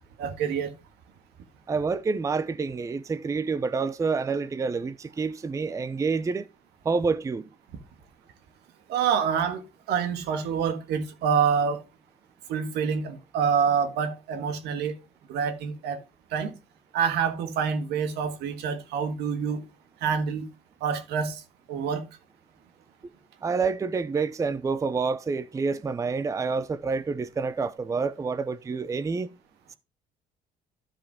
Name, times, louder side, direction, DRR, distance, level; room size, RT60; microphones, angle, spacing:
voice 1, 0.2-0.7 8.9-11.8 12.5-14.9 15.3-16.0 16.3-16.5 16.9-19.6 20.0-20.5 20.8-21.4 21.7-22.0, right 7 dB, 80° right, 1.5 m, -27 dB
voice 2, 1.7-6.5 6.8-7.5 23.4-29.3, right 4 dB, 20° right, 0.5 m, -28 dB
12.5 x 5.1 x 3.5 m
cardioid pair, 110°, 17 cm